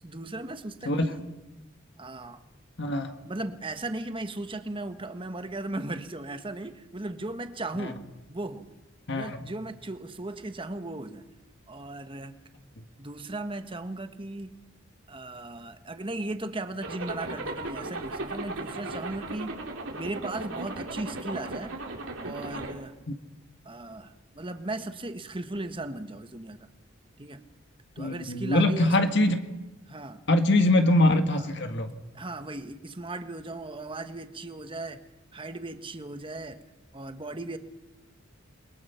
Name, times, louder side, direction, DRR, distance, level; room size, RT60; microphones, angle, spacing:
voice 1, 0.0-1.3 2.0-2.4 3.2-8.0 8.3-8.7 9.1-11.2 11.7-12.4 13.0-14.5 15.1-19.6 19.9-21.7 22.2-22.9 23.6-26.7 27.2-27.4 27.9-29.0 29.9-30.3 31.3-31.5 32.1-35.0 35.3-36.6 36.9-37.6, right 2 dB, 25° right, 8 dB, 1.4 m, -37 dB
voice 2, 2.8-3.1 7.8-7.9 9.1-9.4 28.0-29.4 30.3-31.9, left 1 dB, 60° left, 6 dB, 1.8 m, -23 dB
Zipper (clothing), 16.8-22.7, right 2 dB, 80° right, 3.6 m, -36 dB
28.5 x 22.5 x 5.8 m, 1.0 s
head